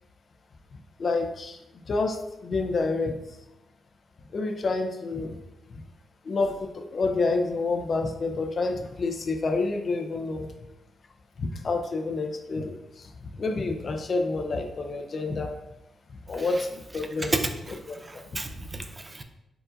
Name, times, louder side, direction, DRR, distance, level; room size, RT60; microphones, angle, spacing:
voice 1, 1.0-1.6 1.9-3.2 4.3-5.4 6.3-10.5 11.4-12.8 13.4-15.5 16.3-17.4 17.7-18.2, left 3 dB, 55° left, 5 dB, 0.6 m, -28 dB
voice 2, 17.7-19.2, right 2 dB, 30° right, 6 dB, 0.6 m, -32 dB
4.7 x 3.8 x 2.6 m, 0.89 s
supercardioid pair, 45°, 0 cm